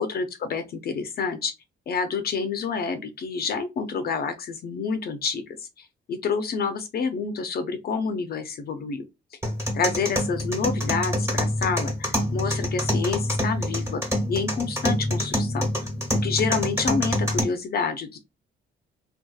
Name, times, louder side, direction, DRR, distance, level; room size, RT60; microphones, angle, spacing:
voice 1, 0.0-1.5 1.9-9.0 9.7-14.0 14.3-15.9 16.2-18.2, left 5 dB, 50° left, 0.4 m, -28 dB
sound 1, 9.4-17.4, left 1 dB, 15° right, 1.1 m, -26 dB
2.6 x 2.3 x 2.3 m
cardioid pair, 90°, 20 cm